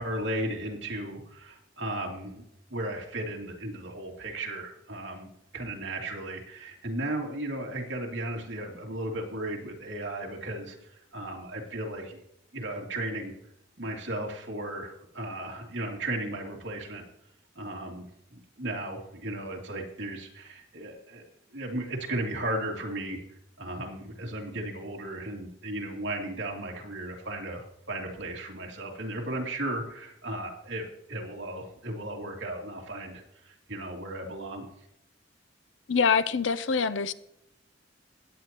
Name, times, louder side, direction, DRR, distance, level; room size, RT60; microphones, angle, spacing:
voice 1, 0.0-2.4 2.7-5.3 5.5-12.2 12.5-13.3 13.8-17.0 17.5-18.0 18.3-21.2 21.5-23.2 23.6-34.7, right 1 dB, 70° right, 0 dB, 2.7 m, -35 dB
voice 2, 35.9-37.1, left 5 dB, 75° left, 15 dB, 0.6 m, -25 dB
16.5 x 9.7 x 3.0 m, 0.78 s
head